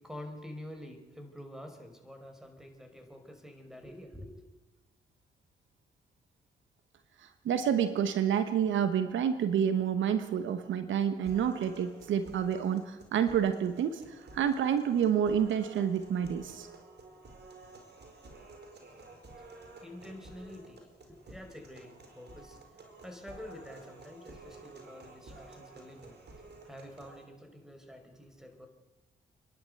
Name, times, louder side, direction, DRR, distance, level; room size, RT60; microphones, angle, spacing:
voice 1, 0.0-4.4 19.1-28.7, left 1 dB, ahead, 6 dB, 5.3 m, -48 dB
voice 2, 7.4-16.7, right 8 dB, 75° right, 10 dB, 1.2 m, -29 dB
sound 1, 11.2-27.2, right 3 dB, 60° right, 4.9 m, -52 dB
29.0 x 11.5 x 8.1 m, 1.1 s
hypercardioid pair, 45°, 20 cm